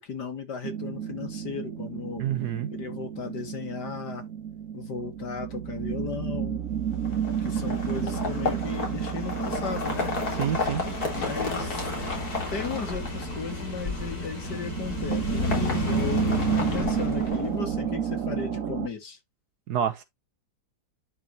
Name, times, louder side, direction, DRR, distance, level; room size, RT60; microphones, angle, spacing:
voice 1, 0.0-2.2 2.7-4.2 4.7-6.6 7.4-10.2 10.9-11.9 12.5-19.2, left 5 dB, 85° left, 2.9 m, -36 dB
sound 1, 0.6-18.9, right 8 dB, 55° right, 1.4 m, -32 dB
voice 2, 2.2-2.7 10.4-10.8 19.7-20.0, right 9 dB, 75° right, 1.6 m, -27 dB
sound 2, 6.9-17.8, left 4 dB, 65° left, 3.6 m, -32 dB
11.0 x 5.4 x 3.0 m
omnidirectional pair, 1.7 m